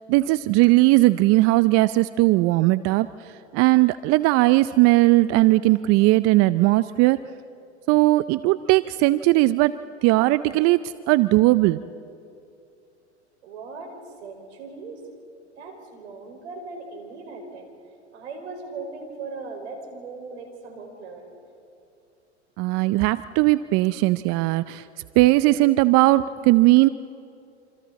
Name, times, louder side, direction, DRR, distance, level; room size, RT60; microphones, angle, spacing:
voice 1, 0.1-3.1 3.5-7.2 7.9-9.7 10.0-10.8 11.1-11.8 22.6-24.8 25.2-26.9, right 19 dB, 45° right, 15 dB, 0.6 m, -18 dB
voice 2, 13.4-13.9 14.2-15.0 15.6-17.7 18.1-21.4, right 4 dB, 75° right, 3 dB, 5.2 m, -38 dB
27.5 x 26.5 x 4.2 m, 2.6 s
hypercardioid pair, 100°, 34 cm